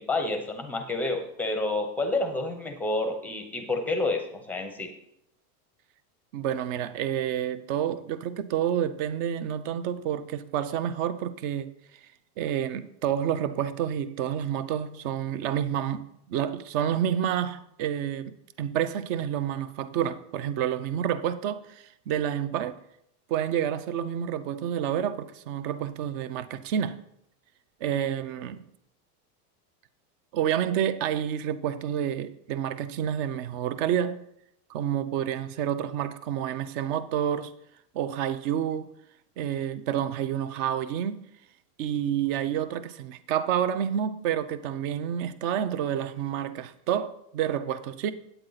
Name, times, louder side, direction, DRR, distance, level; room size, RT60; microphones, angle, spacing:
voice 1, 0.0-4.9, left 2 dB, 5° left, 0.7 m, -29 dB
voice 2, 6.3-11.7 12.4-22.8 23.3-27.0 27.8-28.6 30.3-34.2 34.7-37.5 37.9-38.9 39.4-41.2 41.8-48.1, right 9 dB, 35° right, 0.5 m, -29 dB
8.9 x 8.9 x 3.9 m
supercardioid pair, 170°, 44 cm